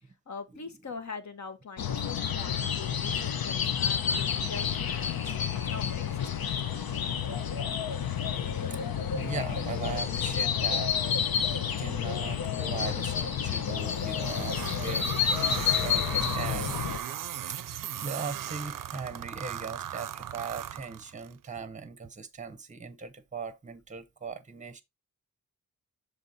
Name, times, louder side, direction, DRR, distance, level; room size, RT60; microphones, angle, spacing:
voice 1, 0.3-5.4 5.6-6.8, left 5 dB, 55° left, 1.2 m, -43 dB
sound 1, 1.8-17.0, left 8 dB, 85° left, 0.8 m, -30 dB
voice 2, 9.1-16.7 17.5-24.8, right 5 dB, 20° right, 0.7 m, -40 dB
sound 2, 13.8-21.3, right 10 dB, 65° right, 0.5 m, -37 dB
7.2 x 3.4 x 4.0 m
wide cardioid pair, 135°, 35 cm